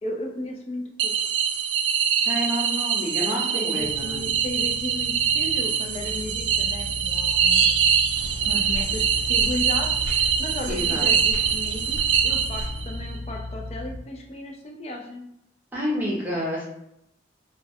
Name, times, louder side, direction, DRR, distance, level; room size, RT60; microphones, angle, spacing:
voice 1, 0.0-1.1 3.2-7.9 8.5-12.0 12.2-15.2, left 1 dB, 35° left, 1 dB, 0.4 m, -35 dB
sound 1, 1.0-12.9, right 7 dB, 80° right, 0.3 m, -24 dB
voice 2, 2.2-4.2 10.7-11.1 15.7-16.6, equal, 10° right, -5 dB, 0.6 m, -29 dB
sound 2, 3.8-14.0, left 1 dB, 70° left, 1.1 m, -37 dB
Walking variations running, 8.1-13.2, equal, 90° left, 0.8 m, -37 dB
2.2 x 2.1 x 3.4 m, 0.80 s
head